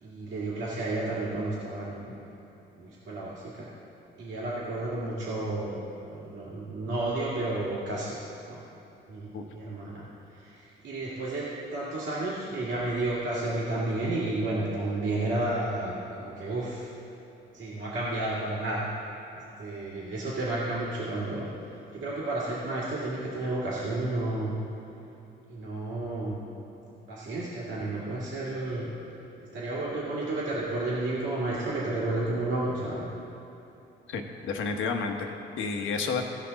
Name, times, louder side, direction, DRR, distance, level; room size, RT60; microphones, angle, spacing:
voice 1, 0.0-2.1 2.8-3.7 4.2-8.2 8.5-8.6 9.1-16.9 17.5-18.9 19.6-21.5 21.9-24.5 25.5-26.4 27.1-28.9 29.4-33.0, right 2 dB, 70° right, -8 dB, 2.1 m, -32 dB
voice 2, 34.1-36.2, left 4 dB, 80° left, 4 dB, 1.1 m, -31 dB
16.5 x 5.7 x 4.0 m, 2.9 s
cardioid pair, 90°, 20 cm